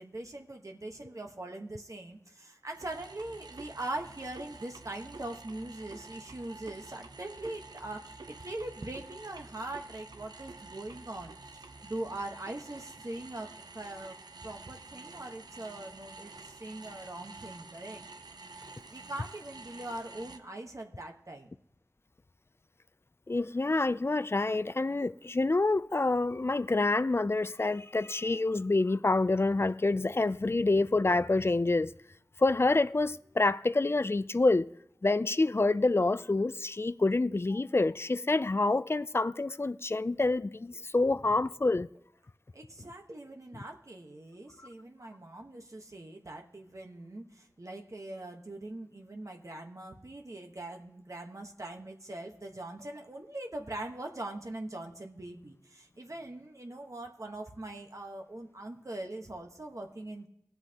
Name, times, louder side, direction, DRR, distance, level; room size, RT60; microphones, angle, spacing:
voice 1, 0.0-14.2 14.4-18.1 18.9-21.5 41.1-41.2 42.5-60.3, right 2 dB, 50° right, 1.2 m, -42 dB
sound 1, 2.7-20.4, right 3 dB, 90° right, 0.7 m, -49 dB
voice 2, 23.3-31.9 32.4-34.7 35.0-41.9, left 2 dB, 35° left, 0.4 m, -27 dB
18.5 x 8.0 x 2.9 m
wide cardioid pair, 40°, 7 cm